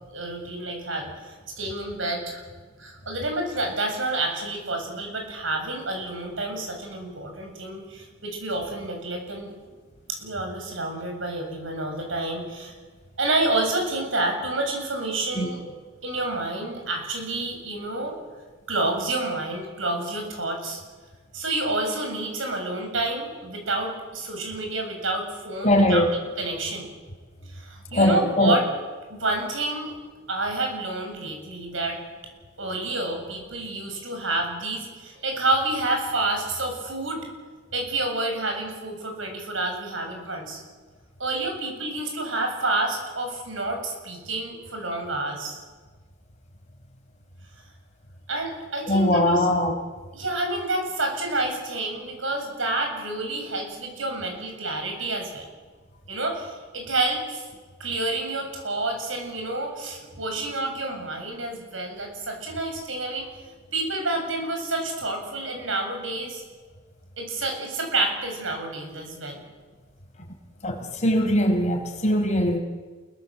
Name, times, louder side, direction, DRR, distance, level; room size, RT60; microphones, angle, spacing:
voice 1, 0.1-2.4 2.8-9.5 10.1-12.7 13.2-15.6 16.0-18.1 18.7-20.8 21.3-26.0 26.4-26.9 27.5-28.6 29.1-29.9 30.3-32.0 32.6-37.2 37.7-40.6 41.2-45.6 48.3-49.5 50.1-55.4 56.1-57.5 57.8-63.3 63.7-66.4 67.2-69.4, right 2 dB, 80° right, 3 dB, 7.6 m, -29 dB
voice 2, 25.6-26.1 27.9-28.6 48.9-49.7 60.4-60.5 70.6-72.6, left 1 dB, 40° left, 3 dB, 4.9 m, -21 dB
29.0 x 22.5 x 8.1 m, 1.4 s
head